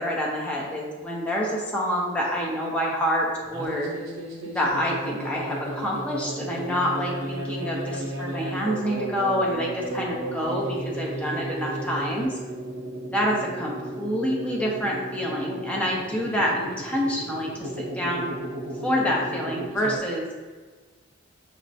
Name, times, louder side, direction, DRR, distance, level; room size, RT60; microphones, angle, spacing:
voice 1, 0.0-3.9 4.5-12.4 13.1-18.3 18.8-20.3, equal, 5° left, -4 dB, 0.6 m, -27 dB
sound 1, 3.4-20.0, right 1 dB, 75° right, 0.7 m, -34 dB
5.6 x 2.1 x 2.7 m, 1.4 s
head